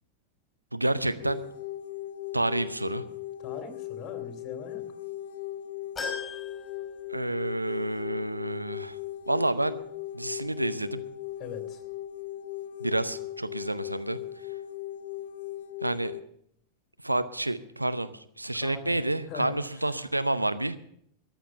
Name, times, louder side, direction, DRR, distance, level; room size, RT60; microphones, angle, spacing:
voice 1, 0.7-1.4 2.3-3.0 7.1-9.0 9.3-9.8 10.1-11.0 12.8-14.5 15.8-16.2 17.0-20.8, right 1 dB, 85° right, 12 dB, 0.7 m, -29 dB
sound 1, 1.2-16.2, left 13 dB, 55° left, 0.7 m, -38 dB
voice 2, 3.4-4.8 11.4-11.8 18.6-19.0 19.3-19.5, left 6 dB, 30° left, 6 dB, 2.5 m, -41 dB
sound 2, 6.0-7.6 8.0-8.1 9.3-9.4, left 4 dB, 15° left, 5.5 m, -39 dB
14.0 x 10.0 x 6.8 m, 0.69 s
figure-of-eight pair, 90°, 0 cm